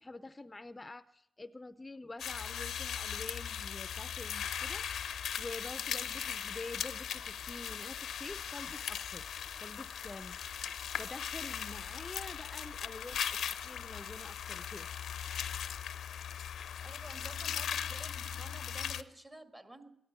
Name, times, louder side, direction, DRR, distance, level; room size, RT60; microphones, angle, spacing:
voice 1, 0.0-9.4 9.6-10.6 11.0-13.2 13.6-14.9, left 2 dB, 25° left, 13 dB, 0.5 m, -47 dB
sound 1, 2.2-19.0, left 8 dB, 75° left, 0.6 m, -39 dB
voice 2, 16.8-20.0, right 1 dB, 25° right, 8 dB, 1.7 m, -51 dB
14.0 x 11.0 x 8.0 m, 0.82 s
supercardioid pair, 55°, 0 cm